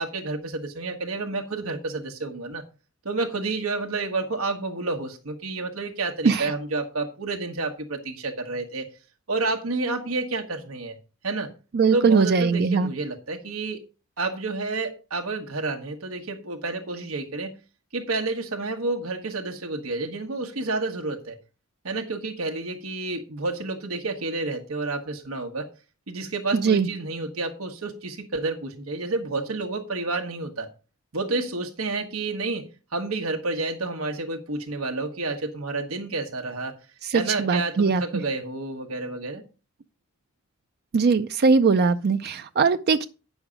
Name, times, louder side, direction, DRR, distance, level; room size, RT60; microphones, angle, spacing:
voice 1, 0.0-2.6 3.0-8.9 9.3-11.0 11.2-11.5 11.9-13.8 14.2-17.5 17.9-21.4 21.8-25.7 26.1-30.7 31.1-36.8 37.1-39.4, right 3 dB, 85° right, 1.2 m, -30 dB
voice 2, 11.7-12.9 26.5-26.9 37.1-38.0 40.9-43.1, right 5 dB, 50° right, 0.4 m, -20 dB
9.6 x 6.3 x 5.0 m
head